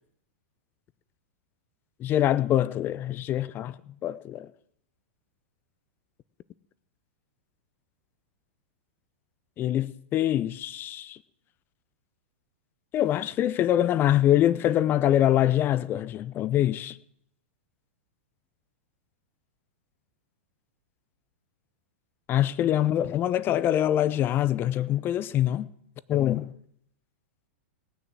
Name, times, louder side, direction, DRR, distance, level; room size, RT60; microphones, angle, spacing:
voice 1, 2.0-4.5 9.6-11.2 12.9-17.0 22.3-25.7 26.1-26.5, left 12 dB, 30° left, 0.6 m, -24 dB
18.0 x 6.8 x 7.5 m
hypercardioid pair, 115°, 7 cm